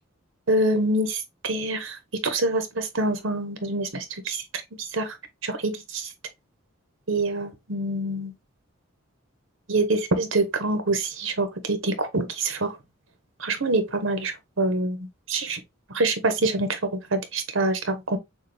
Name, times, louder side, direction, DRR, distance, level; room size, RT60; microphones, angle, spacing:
voice 1, 0.5-4.4 4.8-5.2 5.4-6.1 7.1-8.3 9.7-12.8 13.4-15.6 15.9-18.2, right 2 dB, 70° right, 1.1 m, -26 dB
6.5 x 2.4 x 3.3 m
head